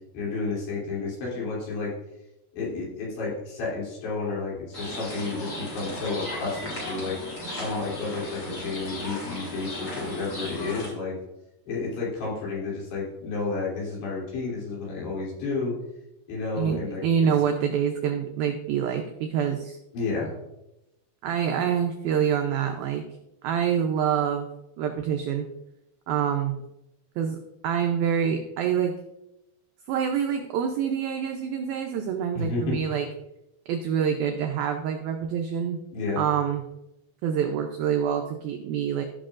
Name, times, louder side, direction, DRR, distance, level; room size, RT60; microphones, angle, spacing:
voice 1, 0.1-1.9 2.5-11.2 11.7-15.7 16.3-17.0 19.9-20.3 32.3-32.8 35.9-36.2, left 3 dB, 75° left, -6 dB, 5.0 m, -31 dB
sound 1, 4.7-10.9, left 1 dB, 35° left, 3.0 m, -36 dB
voice 2, 16.6-19.8 21.2-23.0 23.4-24.5 24.8-25.5 26.1-26.6 27.2-27.4 27.6-28.9 29.9-33.1 33.7-35.8 36.2-36.6 37.2-39.0, right 8 dB, 85° right, 4 dB, 2.1 m, -26 dB
15.0 x 6.3 x 2.5 m, 0.90 s
omnidirectional pair, 5.0 m